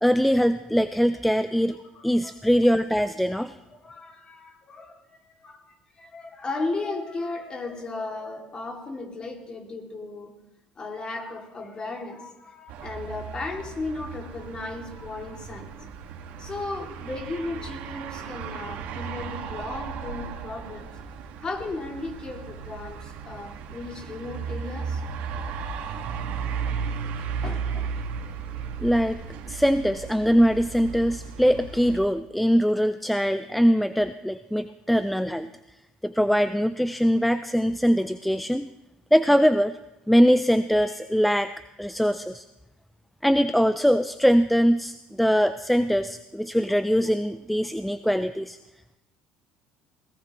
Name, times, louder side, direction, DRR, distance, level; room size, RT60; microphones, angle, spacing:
voice 1, 0.0-1.8 2.0-3.6 28.8-29.2 29.5-35.5 36.0-38.7 39.1-39.7 40.1-41.5 41.8-42.5 43.2-48.6, equal, ahead, 11 dB, 0.4 m, -22 dB
voice 2, 1.7-2.3 3.7-5.0 5.4-5.7 5.9-10.3 10.8-15.9 16.4-21.0 21.4-25.0 27.4-28.0 29.0-29.1, left 3 dB, 30° left, 3 dB, 2.5 m, -35 dB
sound 1, 12.7-32.0, right 6 dB, 70° right, 1.7 m, -35 dB
21.0 x 17.0 x 3.1 m, 0.95 s
supercardioid pair, 100°, 3 cm